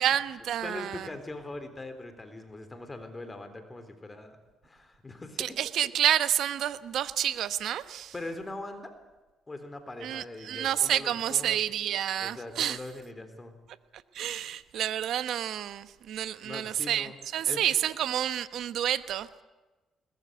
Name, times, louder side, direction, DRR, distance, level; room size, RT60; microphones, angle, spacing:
voice 1, 0.0-1.1 5.4-8.1 10.0-12.8 14.1-19.4, right 10 dB, 75° right, 1.0 m, -29 dB
voice 2, 0.6-4.4 4.6-5.5 8.1-8.9 9.5-11.6 12.2-13.6 16.4-17.1 17.4-17.6, left 2 dB, 20° left, 3.8 m, -41 dB
21.5 x 21.0 x 8.1 m
cardioid pair, 90°, 0 cm